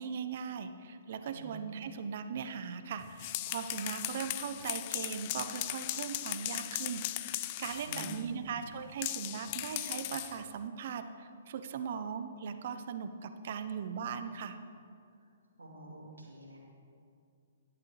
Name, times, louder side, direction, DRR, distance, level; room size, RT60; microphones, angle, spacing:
voice 1, 0.0-14.6, right 6 dB, 55° right, 9 dB, 0.7 m, -39 dB
voice 2, 1.3-1.8 3.8-3.9 7.8-8.5 15.6-16.6, right 1 dB, 85° right, -3 dB, 2.6 m, -47 dB
sound 1, 3.0-8.3 9.0-10.4, left 15 dB, 40° left, 0.4 m, -38 dB
11.5 x 10.5 x 3.3 m, 2.3 s
figure-of-eight pair, 130°, 0 cm